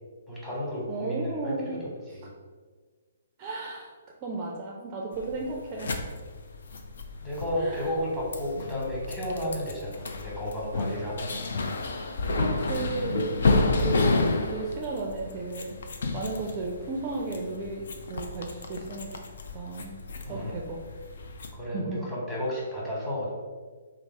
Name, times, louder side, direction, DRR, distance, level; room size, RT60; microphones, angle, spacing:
voice 1, 0.3-1.8 2.1-2.3 7.2-11.3 20.2-20.6 21.5-23.3, left 1 dB, 5° left, -8 dB, 1.1 m, -32 dB
voice 2, 0.9-1.8 3.4-3.9 4.2-6.0 7.6-7.9 12.4-15.8 16.1-17.8 18.1-19.2 19.5-20.0 20.3-20.8 21.7-22.0, right 3 dB, 30° right, -1 dB, 0.4 m, -34 dB
sound 1, 5.1-21.5, left 3 dB, 60° left, 0.4 m, -31 dB
3.3 x 2.0 x 4.0 m, 1.5 s
figure-of-eight pair, 130°, 0 cm